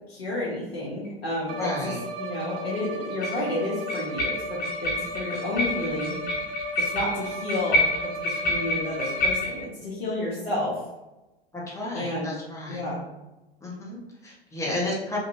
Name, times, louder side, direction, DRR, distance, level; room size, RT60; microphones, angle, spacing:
voice 1, 0.1-6.2 6.8-10.8 11.9-12.3 12.7-13.1, left 2 dB, 75° left, -8 dB, 1.0 m, -31 dB
sound 1, 1.0-1.1 3.2-3.4 3.9-9.6, left 1 dB, 30° left, 1.4 m, -28 dB
Bowed string instrument, 1.5-9.7, right 1 dB, 60° right, 0.6 m, -36 dB
voice 2, 1.6-2.0 11.5-12.8 13.6-15.2, left 2 dB, 10° left, -5 dB, 1.0 m, -32 dB
3.0 x 2.6 x 2.7 m, 1.0 s
figure-of-eight pair, 90°, 32 cm